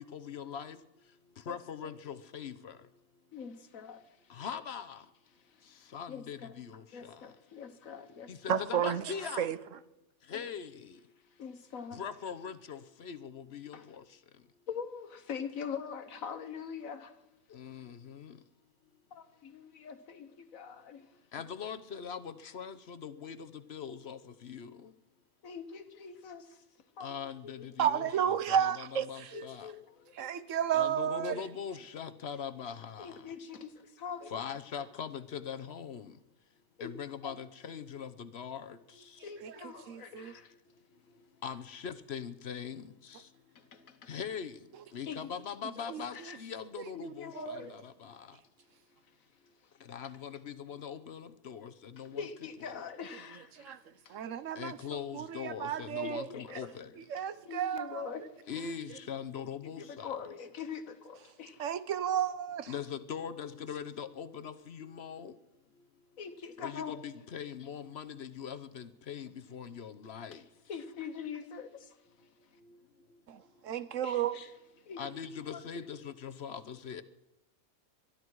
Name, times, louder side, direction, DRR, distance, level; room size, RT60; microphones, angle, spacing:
voice 1, 0.1-0.8 1.5-2.7 4.4-5.0 5.9-6.7 8.3-9.5 10.3-10.7 12.0-13.8 17.6-18.3 21.3-24.2 24.4-24.7 27.0-29.7 30.7-33.1 34.3-36.0 36.8-38.7 41.4-42.8 44.1-44.5 44.9-47.8 49.9-51.7 52.0-52.2 52.7-52.8 54.6-56.9 58.5-60.1 62.7-65.3 66.6-70.4 75.0-77.0, left 7 dB, 55° left, 1.0 m, -41 dB
voice 2, 3.3-4.2 4.7-4.8 5.5-5.6 6.1-6.5 6.9-8.3 10.3-10.4 11.4-12.0 13.7-13.9 14.7-17.1 19.1-21.1 25.4-26.6 27.0-27.7 29.3-30.2 33.0-34.4 36.8-36.9 37.2-37.3 39.2-40.5 43.5-44.1 45.1-45.4 45.8-46.4 46.9-47.8 48.2-48.3 52.0-53.7 54.0-54.2 56.0-56.7 57.4-58.6 59.8-61.6 66.2-67.0 70.3-70.4 70.7-72.0 74.0-74.5 74.9-75.0 75.5-75.6, left 6 dB, 80° left, 1.6 m, -43 dB
voice 3, 8.5-9.6 27.8-29.5 30.2-31.4 39.4-40.3 45.9-46.1 47.0-47.6 53.6-53.8 54.1-56.3 57.1-58.1 61.6-62.7 73.3-74.3, right 9 dB, 70° right, 1.1 m, -32 dB
22.0 x 12.5 x 4.7 m
omnidirectional pair, 1.4 m